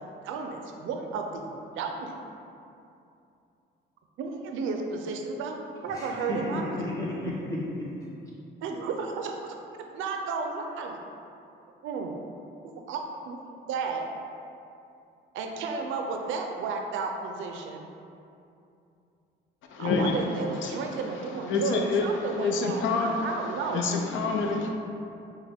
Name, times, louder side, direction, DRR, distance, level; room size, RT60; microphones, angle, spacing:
voice 1, 0.0-2.2 4.2-5.6 5.8-6.7 8.6-9.6 9.9-11.0 11.8-12.1 12.6-14.1 15.3-17.8 19.8-23.8, right 4 dB, 80° right, 3 dB, 0.4 m, -33 dB
voice 2, 5.9-7.9, left 1 dB, 15° left, -6 dB, 1.1 m, -33 dB
voice 3, 19.7-20.2 20.6-20.8 21.5-22.1 22.4-23.3 23.7-24.7, left 4 dB, 80° left, 2 dB, 0.5 m, -27 dB
4.9 x 2.2 x 3.4 m, 2.6 s
cardioid pair, 90°, 20 cm